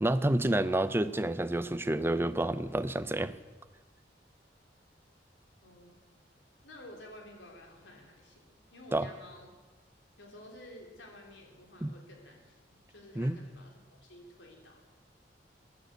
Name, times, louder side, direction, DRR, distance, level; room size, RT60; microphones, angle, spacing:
voice 1, 0.0-3.3 8.9-9.1 11.8-11.9 13.2-13.4, right 1 dB, 15° right, 13 dB, 0.5 m, -29 dB
voice 2, 5.6-5.9 6.6-8.4 8.7-9.5 10.2-14.9, left 1 dB, 90° left, 1 dB, 3.5 m, -52 dB
15.0 x 10.5 x 8.1 m, 1.2 s
head